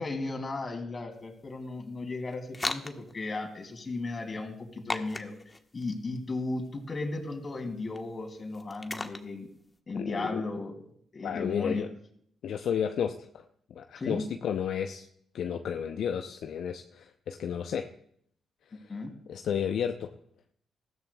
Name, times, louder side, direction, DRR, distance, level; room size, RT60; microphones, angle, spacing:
voice 1, 0.0-5.3 5.7-9.5 9.9-10.8 11.1-11.9 13.9-14.2 18.9-19.1, left 3 dB, 40° left, 4 dB, 2.8 m, -35 dB
sound 1, 1.1-9.8, left 2 dB, 25° left, 1.2 m, -41 dB
voice 2, 9.9-10.4 11.2-11.9 12.4-13.4 13.7-15.1 15.3-17.9 18.8-18.9 19.3-20.1, left 8 dB, 70° left, 7 dB, 0.6 m, -32 dB
19.5 x 13.5 x 2.3 m, 0.67 s
hypercardioid pair, 45°, 0 cm